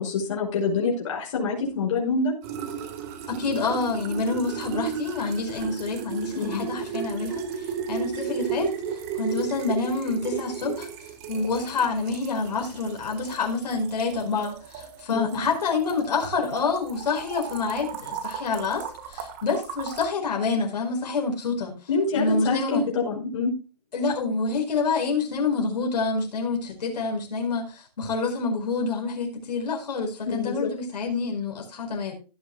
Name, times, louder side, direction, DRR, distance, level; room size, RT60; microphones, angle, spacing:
voice 1, 0.0-2.3 6.3-6.7 15.1-15.4 21.9-23.5 30.3-30.7, left 4 dB, 45° left, -1 dB, 5.5 m, -26 dB
sound 1, 2.4-20.1, right 7 dB, 25° right, 1.4 m, -35 dB
voice 2, 3.3-10.9 11.3-21.8 22.1-22.8 23.9-32.1, left 4 dB, 75° left, 1 dB, 4.7 m, -27 dB
17.0 x 9.1 x 2.3 m, 0.33 s
hypercardioid pair, 175°, 21 cm